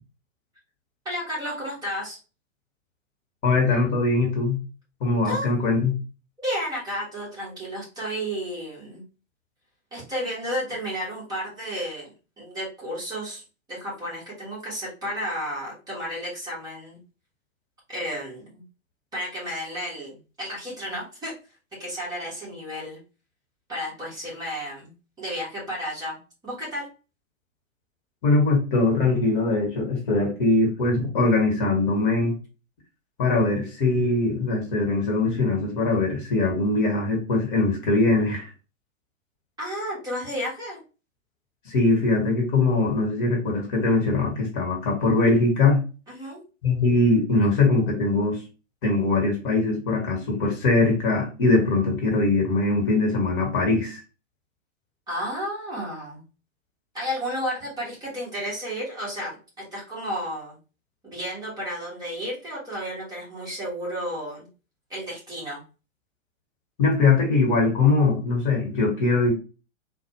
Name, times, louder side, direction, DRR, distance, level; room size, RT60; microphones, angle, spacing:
voice 1, 1.0-2.2 5.2-5.5 6.4-9.0 9.9-13.4 13.7-17.0 17.9-18.6 19.1-21.3 21.8-23.0 23.7-24.9 25.2-26.2 26.4-26.9 39.6-40.8 46.1-46.4 55.1-56.2 56.9-60.6 61.0-64.5 64.9-65.6, equal, 10° right, -6 dB, 1.4 m, -32 dB
voice 2, 3.4-4.6 5.0-5.9 28.2-32.3 33.2-38.5 41.7-45.8 46.6-48.4 48.8-54.0 66.8-69.3, left 3 dB, 40° left, 0 dB, 1.2 m, -22 dB
4.0 x 2.3 x 2.9 m, 0.32 s
figure-of-eight pair, 115°, 39 cm